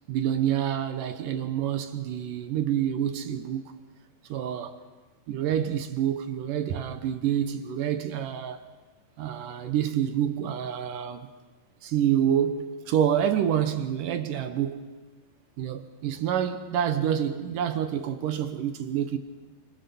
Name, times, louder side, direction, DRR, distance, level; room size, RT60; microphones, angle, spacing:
voice 1, 0.1-3.6 4.3-4.8 5.3-8.6 9.2-11.3 11.8-14.9 15.6-19.2, right 9 dB, 70° right, 2.3 m, -27 dB
25.5 x 25.5 x 7.0 m
omnidirectional pair, 4.6 m